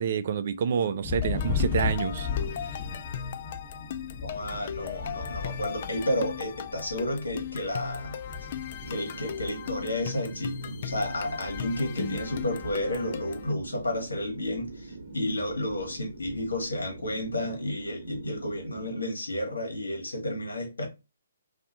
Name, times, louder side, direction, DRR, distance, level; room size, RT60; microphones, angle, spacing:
voice 1, 0.0-2.3, right 7 dB, 50° right, 0.4 m, -28 dB
Thunder, 1.0-13.9 14.2-14.8 15.1-16.6, left 5 dB, 30° left, 1.2 m, -37 dB
sound 1, 1.2-13.5, left 8 dB, 45° left, 0.4 m, -38 dB
voice 2, 4.2-8.2 8.9-20.9, left 1 dB, 80° left, 1.3 m, -31 dB
sound 2, 8.8-18.9, right 3 dB, 70° right, 0.8 m, -44 dB
2.7 x 2.4 x 3.8 m
figure-of-eight pair, 135°, 0 cm